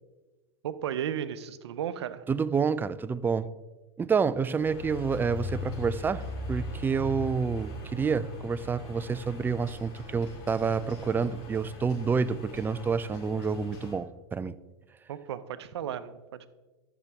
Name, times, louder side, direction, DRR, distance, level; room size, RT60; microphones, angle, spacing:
voice 1, 0.6-2.2 15.1-16.5, right 9 dB, 80° right, 13 dB, 0.6 m, -34 dB
voice 2, 2.3-3.5 4.0-14.6, right 5 dB, 15° right, 16 dB, 0.3 m, -28 dB
sound 1, 4.6-13.9, left 2 dB, 55° left, 3.1 m, -40 dB
13.5 x 6.0 x 3.4 m, 1.2 s
hypercardioid pair, 95°, 14 cm